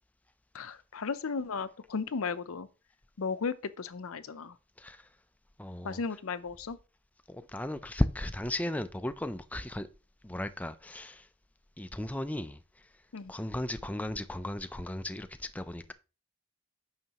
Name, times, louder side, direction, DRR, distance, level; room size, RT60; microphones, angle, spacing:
voice 1, 0.5-2.7 3.2-4.6 5.8-6.8 13.1-13.3, left 5 dB, 80° left, 0.6 m, -35 dB
voice 2, 4.8-5.1 5.6-6.0 7.3-9.9 10.2-11.3 11.8-12.9 13.3-15.9, left 1 dB, 5° left, 0.4 m, -35 dB
9.3 x 6.5 x 2.9 m
head